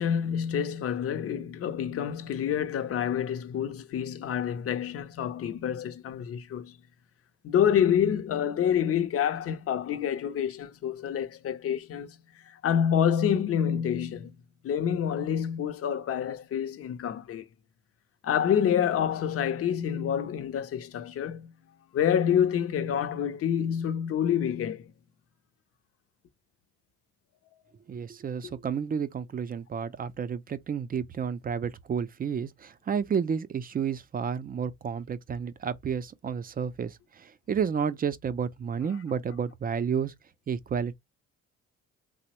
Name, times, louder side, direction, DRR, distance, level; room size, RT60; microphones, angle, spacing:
voice 1, 0.0-6.8 7.4-14.3 14.6-17.5 18.2-21.5 21.9-24.9, left 9 dB, 50° left, 0.6 m, -27 dB
voice 2, 27.9-40.1 40.5-41.0, right 7 dB, 30° right, 0.4 m, -31 dB
3.3 x 2.0 x 2.9 m
cardioid pair, 90°, 30 cm